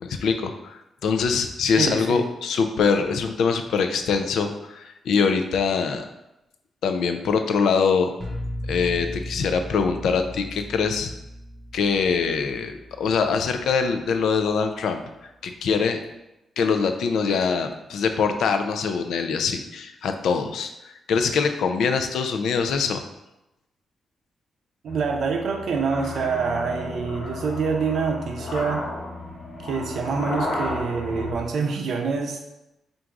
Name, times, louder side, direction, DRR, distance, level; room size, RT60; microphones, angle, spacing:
voice 1, 0.0-6.1 6.8-8.1 8.6-11.1 11.7-15.0 15.4-16.0 16.6-23.0, left 5 dB, 85° left, 7 dB, 0.4 m, -23 dB
voice 2, 1.8-2.2 24.8-28.8 29.6-32.4, right 5 dB, 60° right, 3 dB, 0.5 m, -26 dB
sound 1, 8.2-14.0, equal, 15° left, 1.0 m, -37 dB
sound 2, 24.9-31.3, left 1 dB, 50° left, 1.1 m, -33 dB
3.6 x 2.6 x 4.5 m, 0.92 s
wide cardioid pair, 175°, 0 cm